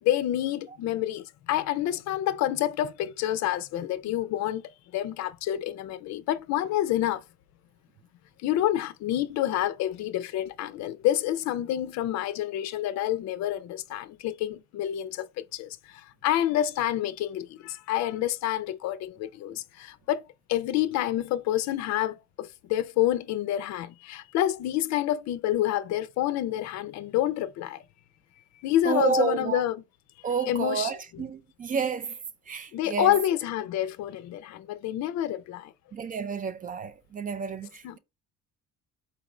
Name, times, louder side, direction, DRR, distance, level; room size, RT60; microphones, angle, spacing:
voice 1, 0.0-4.6 4.9-7.2 8.4-20.2 20.5-27.8 28.6-29.8 30.4-31.2 32.7-35.7 37.8-38.0, left 12 dB, 65° left, 0.5 m, -28 dB
voice 2, 28.8-29.6 30.2-32.1 32.5-33.1 35.9-38.0, right 6 dB, 30° right, 0.3 m, -30 dB
4.3 x 2.5 x 3.0 m
supercardioid pair, 90°, 29 cm